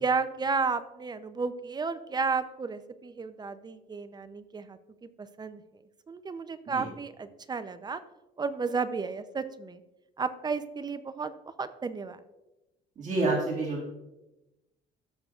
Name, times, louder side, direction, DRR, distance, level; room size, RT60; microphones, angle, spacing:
voice 1, 0.0-5.6 6.1-8.0 8.4-9.8 10.2-12.2, right 4 dB, 25° right, 12 dB, 0.6 m, -33 dB
voice 2, 13.0-13.9, right 2 dB, 45° right, -3 dB, 2.0 m, -28 dB
14.0 x 6.7 x 2.4 m, 0.98 s
cardioid pair, 110°, 17 cm